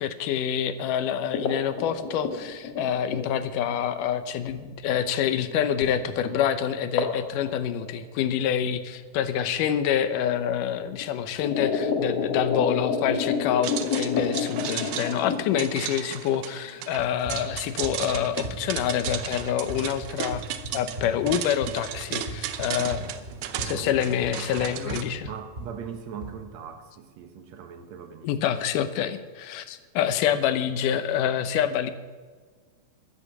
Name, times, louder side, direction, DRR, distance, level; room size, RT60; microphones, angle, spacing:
voice 1, 0.0-20.4 20.7-23.2 23.6-25.3 28.2-31.9, left 9 dB, 90° left, 11 dB, 2.5 m, -27 dB
sound 1, 1.3-3.7 4.5-4.6 5.8-6.0 6.3-6.4 7.0-7.2 7.5-8.3 9.4-9.5 10.5-10.6 11.0-15.6, left 5 dB, 55° left, 2.4 m, -28 dB
sound 2, 13.6-25.0, right 10 dB, 85° right, 2.4 m, -35 dB
Run, 17.0-26.4, right 2 dB, 20° right, 2.5 m, -38 dB
voice 2, 23.7-24.5 24.8-28.3, right 7 dB, 65° right, 7 dB, 2.2 m, -40 dB
13.0 x 10.5 x 7.3 m, 1.5 s
omnidirectional pair, 3.6 m